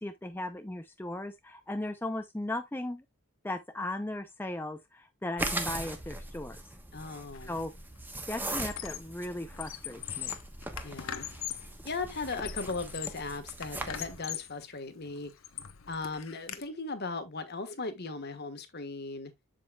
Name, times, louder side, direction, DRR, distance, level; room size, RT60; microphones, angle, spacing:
voice 1, 0.0-3.0 3.4-6.6 7.5-7.7 8.3-10.4, left 1 dB, 10° left, 0.5 m, -37 dB
sound 1, 5.4-14.2, right 1 dB, 10° right, 1.0 m, -40 dB
voice 2, 6.9-7.6 10.8-11.3 11.8-15.3 15.9-19.3, left 3 dB, 50° left, 1.4 m, -37 dB
Squeak, 7.3-7.6 8.0-9.2 9.5-11.7 12.2-13.3 13.6-14.6 15.1-16.6, left 10 dB, 70° left, 0.9 m, -41 dB
7.7 x 7.5 x 2.3 m
head